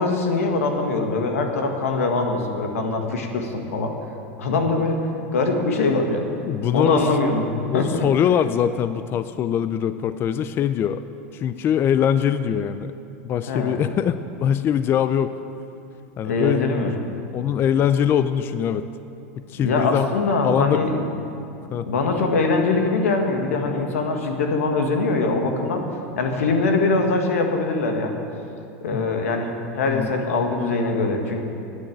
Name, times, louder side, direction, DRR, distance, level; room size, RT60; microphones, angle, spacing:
voice 1, 0.0-3.9 4.4-5.0 5.3-6.2 6.7-7.5 7.7-8.1 13.5-13.8 16.2-16.9 19.6-21.1 21.9-25.8 26.2-28.1 28.8-31.4, left 3 dB, 90° left, 4 dB, 1.8 m, -22 dB
voice 2, 6.4-7.1 7.7-11.0 11.3-12.9 13.2-15.3 16.2-16.7 17.3-18.9 19.5-20.1 20.4-20.8 21.7-21.9 28.9-29.1 29.9-30.1, left 9 dB, 30° left, 12 dB, 0.4 m, -22 dB
10.5 x 9.2 x 8.7 m, 2.7 s
supercardioid pair, 125°, 7 cm